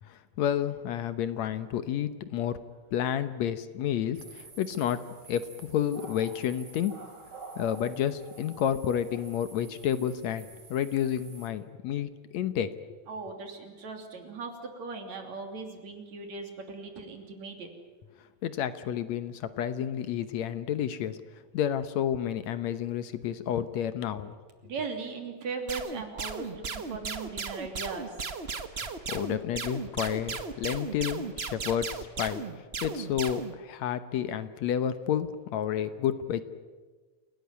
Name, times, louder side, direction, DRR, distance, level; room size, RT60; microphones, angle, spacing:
voice 1, 0.0-2.6 2.9-7.0 7.6-12.7 18.4-21.2 21.5-24.3 28.8-36.4, left 9 dB, 70° left, 12 dB, 2.2 m, -30 dB
sound 1, 4.1-11.5, right 4 dB, 35° right, 3.3 m, -49 dB
voice 2, 13.1-17.7 24.6-28.3, right 4 dB, 65° right, 4 dB, 4.2 m, -38 dB
sound 2, 25.7-33.5, right 4 dB, 85° right, 0.5 m, -36 dB
28.5 x 18.0 x 9.5 m, 1.4 s
omnidirectional pair, 3.4 m